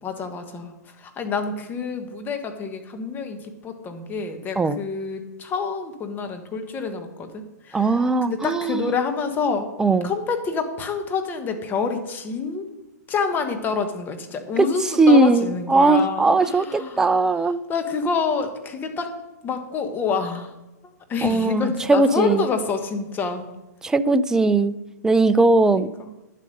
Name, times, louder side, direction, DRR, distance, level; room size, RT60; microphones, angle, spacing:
voice 1, 0.0-9.7 10.0-12.7 13.1-19.2 19.4-20.5 20.8-23.5 25.6-26.1, left 5 dB, 20° left, 6 dB, 1.2 m, -28 dB
voice 2, 7.7-8.8 9.8-10.1 14.6-14.7 15.0-17.6 21.2-22.4 23.8-24.7 25.0-25.9, right 3 dB, 5° right, 14 dB, 0.3 m, -19 dB
10.5 x 7.5 x 5.2 m, 1.0 s
hypercardioid pair, 135°, 10 cm